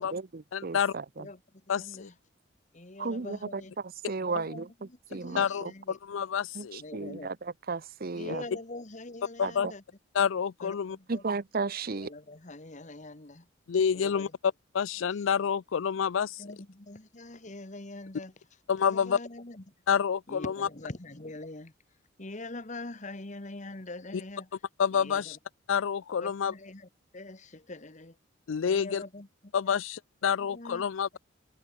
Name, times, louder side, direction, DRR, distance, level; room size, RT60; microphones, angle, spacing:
voice 1, 0.0-1.3 3.0-5.7 6.5-8.4 9.4-9.7 11.1-12.1, right 4 dB, 45° right, 0.7 m, -35 dB
voice 2, 0.5-0.9 1.7-2.1 5.4-6.8 9.4-9.7 10.2-11.0 13.7-14.3 14.7-16.4 18.7-19.2 19.9-20.5 24.8-25.4 25.7-26.5 28.5-29.0 29.5-31.2, left 7 dB, 75° left, 0.4 m, -28 dB
voice 3, 1.7-2.2 2.7-3.7 4.3-6.0 6.8-7.3 8.1-9.8 10.6-11.2 11.9-13.5 13.9-14.3 15.1-15.3 16.4-18.3 18.8-19.7 20.3-21.7 22.2-24.6 24.9-25.4 26.2-28.2 28.6-29.8 30.4-30.9, left 2 dB, 35° left, 1.6 m, -44 dB
open air
head